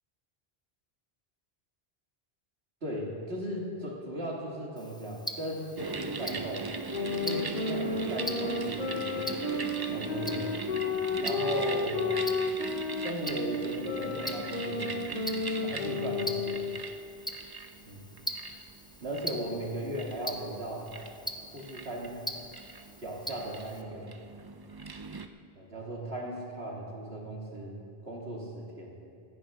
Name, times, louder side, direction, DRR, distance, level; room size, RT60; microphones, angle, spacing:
voice 1, 2.8-6.7 7.2-9.2 9.9-10.6 11.2-12.0 13.0-15.3 15.6-16.6 17.9-18.1 19.0-20.9 21.5-22.2 23.0-24.2 25.5-27.8 28.0-29.0, right 1 dB, 75° right, -3 dB, 2.6 m, -37 dB
Tick-tock, 4.8-23.8, equal, 5° left, 0.7 m, -43 dB
sound 1, 5.8-25.3, right 4 dB, 35° right, 0.4 m, -40 dB
sound 2, 6.9-16.9, left 3 dB, 40° left, 1.1 m, -32 dB
24.5 x 10.0 x 3.7 m, 2.4 s
omnidirectional pair, 1.1 m